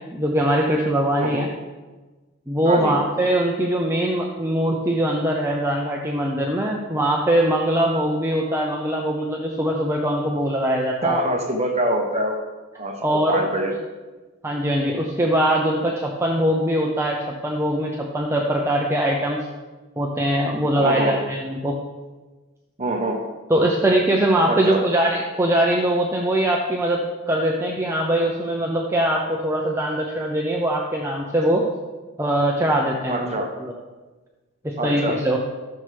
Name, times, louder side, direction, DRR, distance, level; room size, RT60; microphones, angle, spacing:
voice 1, 0.0-1.5 2.5-11.2 13.0-13.4 14.4-19.4 20.0-21.8 23.5-31.7 32.2-33.3 33.6-33.7 34.6-35.4, right 1 dB, 10° right, -1 dB, 0.6 m, -22 dB
voice 2, 1.1-1.4 2.6-3.0 11.0-12.4 12.7-13.7 20.8-21.1 22.8-23.2 24.5-24.8 33.1-33.5 34.8-35.2, right 1 dB, 30° right, 2 dB, 1.0 m, -24 dB
14.0 x 6.8 x 3.5 m, 1.3 s
head